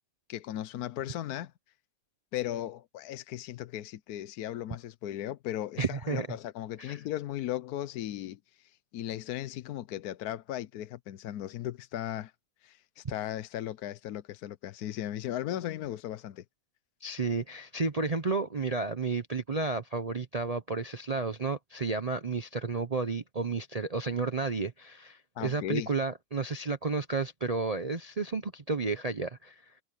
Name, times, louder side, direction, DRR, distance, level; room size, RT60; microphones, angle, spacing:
voice 1, 0.3-1.5 2.3-12.3 12.6-16.4 25.4-25.9, left 12 dB, 65° left, 1.1 m, -37 dB
voice 2, 5.8-6.3 6.8-7.0 17.0-29.7, right 4 dB, 70° right, 0.3 m, -32 dB
omnidirectional pair, 1.9 m